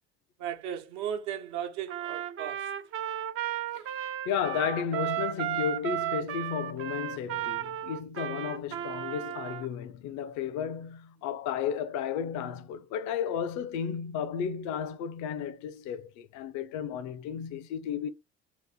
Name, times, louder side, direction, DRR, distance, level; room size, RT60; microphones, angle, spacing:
voice 1, 0.4-2.7, right 9 dB, 60° right, 1.0 m, -36 dB
Trumpet, 1.9-9.7, right 12 dB, 40° right, 0.6 m, -34 dB
voice 2, 4.2-18.1, left 8 dB, 60° left, 0.7 m, -33 dB
3.2 x 3.0 x 4.1 m
hypercardioid pair, 65°, 32 cm